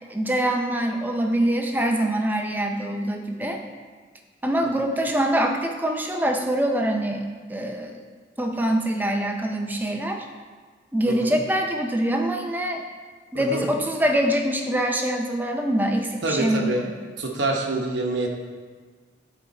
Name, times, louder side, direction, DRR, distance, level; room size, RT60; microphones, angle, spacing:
voice 1, 0.1-3.6 4.4-8.0 8.4-10.3 10.9-12.8 13.3-16.7, right 1 dB, 10° right, 3 dB, 0.5 m, -24 dB
voice 2, 11.1-11.4 13.3-13.7 16.2-18.3, right 2 dB, 65° right, 1 dB, 1.0 m, -26 dB
10.5 x 4.5 x 4.2 m, 1.5 s
head